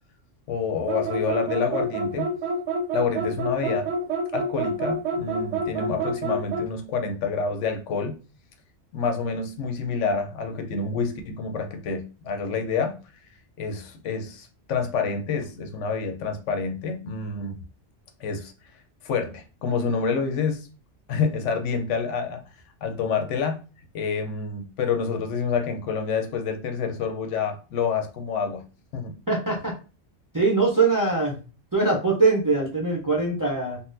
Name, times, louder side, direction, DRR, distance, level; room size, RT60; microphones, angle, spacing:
voice 1, 0.5-2.3 2.9-8.2 8.9-13.0 13.6-17.6 18.2-18.5 19.0-20.7 21.1-22.4 22.8-23.6 23.9-28.6 28.9-29.2, left 5 dB, 80° left, 6 dB, 0.9 m, -28 dB
sound 1, 0.9-6.7, right 2 dB, 90° right, 0.9 m, -28 dB
voice 2, 29.3-29.7 30.3-31.4 31.7-33.8, right 3 dB, 25° right, -3 dB, 0.5 m, -22 dB
3.8 x 2.1 x 2.5 m, 0.34 s
omnidirectional pair, 1.2 m